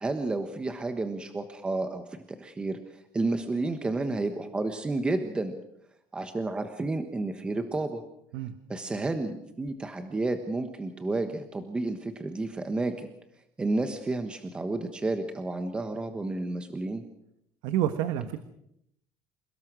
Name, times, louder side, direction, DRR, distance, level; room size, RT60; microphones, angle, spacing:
voice 1, 0.0-5.6 6.1-8.0 8.7-13.1 13.6-17.0, right 2 dB, 15° right, 7 dB, 1.3 m, -31 dB
voice 2, 17.6-18.4, right 11 dB, 80° right, 10 dB, 1.4 m, -28 dB
28.0 x 18.5 x 6.3 m, 0.76 s
cardioid pair, 165°, 7 cm